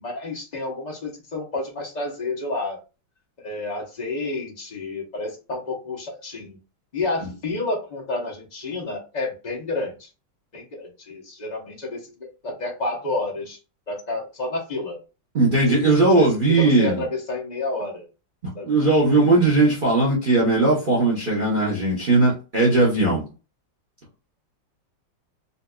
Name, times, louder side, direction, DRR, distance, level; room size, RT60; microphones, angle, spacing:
voice 1, 0.0-2.8 3.4-6.6 6.9-10.1 10.5-13.6 13.9-15.0 15.7-18.1 18.5-19.5, left 2 dB, 35° left, -2 dB, 0.7 m, -30 dB
voice 2, 15.3-17.0 18.6-23.2, right 2 dB, 35° right, -6 dB, 0.9 m, -18 dB
4.0 x 2.6 x 2.3 m, 0.32 s
omnidirectional pair, 2.0 m